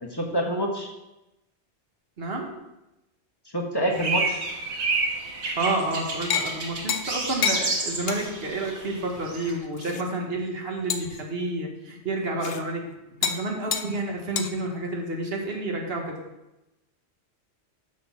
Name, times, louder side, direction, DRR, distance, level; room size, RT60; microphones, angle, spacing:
voice 1, 0.0-0.9 3.5-4.4, equal, 20° left, 0 dB, 1.2 m, -27 dB
voice 2, 2.2-2.6 5.6-12.9 13.2-16.2, right 2 dB, 60° right, 1 dB, 1.6 m, -30 dB
sound 1, 3.9-9.5, right 3 dB, 80° right, 1.6 m, -30 dB
sound 2, 6.3-6.5 6.9-7.1 7.4-7.6 8.1-8.3 8.6-8.7 9.5-10.0 10.9-11.2 12.4-12.6 13.2-13.4 13.7-13.9 14.4-14.5, left 7 dB, 65° left, 0.9 m, -28 dB
7.0 x 6.2 x 5.7 m, 0.96 s
omnidirectional pair, 1.1 m